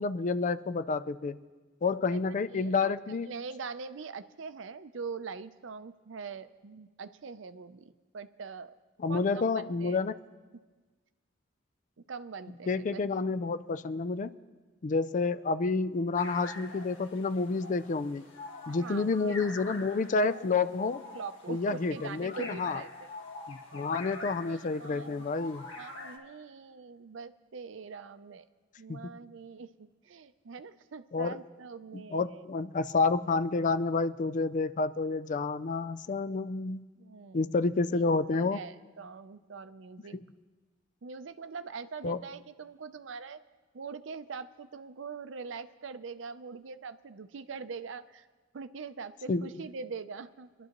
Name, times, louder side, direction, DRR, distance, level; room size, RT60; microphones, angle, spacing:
voice 1, 0.0-1.4 1.8-3.3 9.0-10.2 12.7-14.3 14.8-18.2 18.7-21.0 21.5-22.8 23.5-25.6 28.9-29.0 31.1-31.4 31.9-36.8 37.3-38.6 40.1-40.2 42.0-42.2 49.3-49.5, left 4 dB, 40° left, 14 dB, 0.4 m, -29 dB
voice 2, 2.1-2.9 3.2-8.8 9.1-10.1 12.1-13.0 15.6-15.7 18.8-19.4 21.1-23.1 24.0-25.2 25.8-28.5 28.8-32.4 32.8-32.9 37.0-37.5 38.0-40.2 41.0-43.4 43.7-48.3 48.5-50.7, right 5 dB, 70° right, 12 dB, 0.5 m, -43 dB
sound 1, 16.1-26.2, left 3 dB, 75° left, 1.7 m, -45 dB
23.5 x 11.5 x 3.0 m, 1.3 s
head